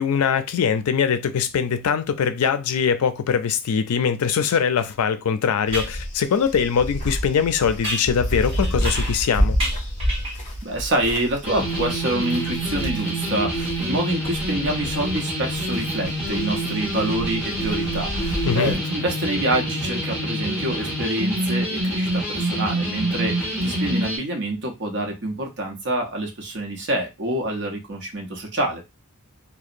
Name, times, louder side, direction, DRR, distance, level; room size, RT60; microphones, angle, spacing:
voice 1, 0.0-9.6 18.5-18.8, left 7 dB, 85° left, 0.4 m, -22 dB
sound 1, 4.8-4.9 5.7-6.0 7.8-9.3 9.6-10.5, right 1 dB, 25° right, 1.1 m, -31 dB
sound 2, 5.7-13.8 14.2-18.7, equal, 35° left, 0.8 m, -29 dB
voice 2, 10.6-28.8, right 1 dB, 55° right, 0.7 m, -26 dB
sound 3, 11.4-24.2, right 1 dB, 5° right, 0.9 m, -26 dB
2.8 x 2.0 x 2.4 m
head